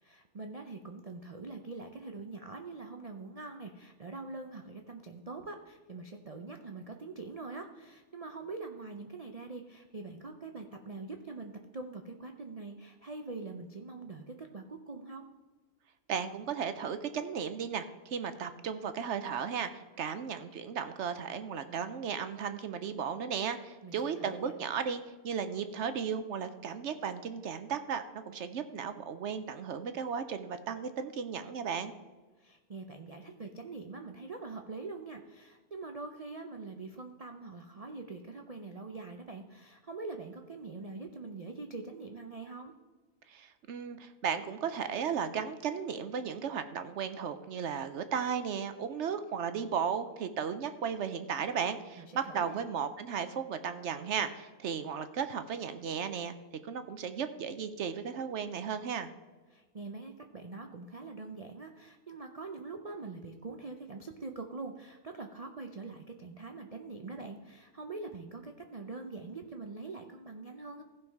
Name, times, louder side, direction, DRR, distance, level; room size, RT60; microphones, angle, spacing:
voice 1, 0.0-15.3 23.8-24.5 32.4-42.7 52.0-52.6 59.5-70.8, right 3 dB, 80° right, 4 dB, 0.3 m, -44 dB
voice 2, 16.1-31.9 43.3-56.3 56.6-59.1, right 7 dB, 60° right, 10 dB, 0.8 m, -35 dB
15.0 x 5.5 x 4.6 m, 1.3 s
omnidirectional pair, 1.6 m